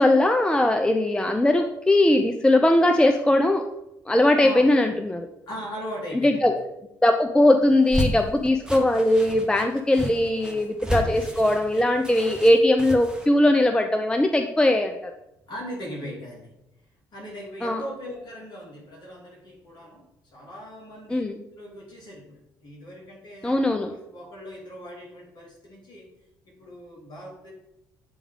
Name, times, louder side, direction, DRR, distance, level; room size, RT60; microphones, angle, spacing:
voice 1, 0.0-3.6 4.1-5.3 6.2-6.5 7.0-15.1 17.6-17.8 21.1-21.4 23.4-23.9, left 1 dB, 10° left, 5 dB, 0.4 m, -20 dB
voice 2, 5.5-6.5 10.9-11.2 15.5-16.5 17.1-20.0 20.3-21.2 21.6-23.6 23.9-26.1 26.5-27.5, equal, 45° left, -3 dB, 2.4 m, -39 dB
sound 1, 7.7-13.3, equal, 10° right, 1.0 m, -32 dB
8.5 x 3.5 x 3.5 m, 0.88 s
figure-of-eight pair, 45°, 10 cm